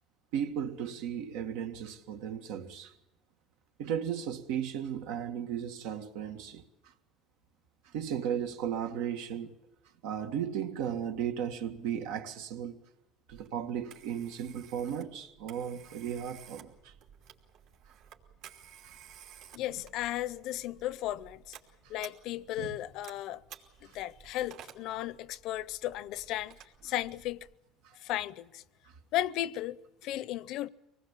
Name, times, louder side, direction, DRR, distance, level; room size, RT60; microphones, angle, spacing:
voice 1, 0.3-2.9 3.8-6.6 7.9-9.5 10.0-12.8 13.3-16.9 19.7-19.8 22.6-22.8, right 9 dB, 90° right, 1.9 m, -35 dB
Telephone, 13.3-27.5, right 9 dB, 70° right, 2.8 m, -55 dB
voice 2, 19.5-21.6 21.9-23.4 23.8-27.5 28.0-28.6 29.1-29.8 30.0-30.7, left 13 dB, 60° left, 0.7 m, -35 dB
25.0 x 19.5 x 7.4 m
cardioid pair, 140°, 0 cm